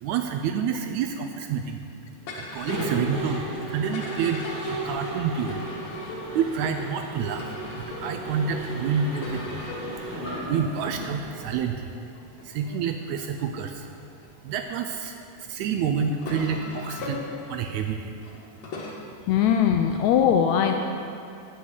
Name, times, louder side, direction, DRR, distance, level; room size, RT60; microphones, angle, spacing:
voice 1, 0.0-1.8 2.4-5.6 6.4-9.4 10.1-11.9 12.4-13.9 14.4-15.2 15.5-17.2 17.5-18.1, right 7 dB, 80° right, 6 dB, 1.7 m, -28 dB
sound 1, 2.2-14.8 15.5-18.9, left 2 dB, 60° left, 2.2 m, -41 dB
Mechanisms, 2.5-11.5, right 1 dB, 10° right, 1.7 m, -35 dB
voice 2, 19.3-20.7, left 8 dB, 80° left, 4 dB, 1.7 m, -21 dB
8.5 x 8.1 x 7.9 m, 2.7 s
omnidirectional pair, 3.7 m